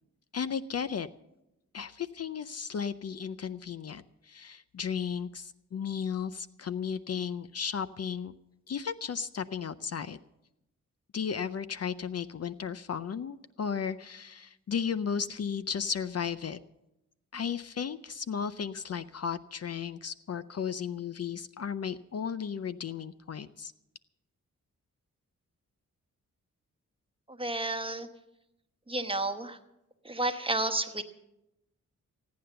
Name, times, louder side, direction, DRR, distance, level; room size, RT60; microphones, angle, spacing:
voice 1, 0.3-1.1 1.7-8.3 8.7-10.2 11.1-16.6 17.3-23.7, left 7 dB, 50° left, 14 dB, 0.5 m, -34 dB
voice 2, 27.3-28.1 28.9-29.6 30.0-31.0, right 2 dB, 15° right, 7 dB, 1.2 m, -31 dB
16.0 x 9.5 x 6.8 m, 0.90 s
cardioid pair, 70°, 32 cm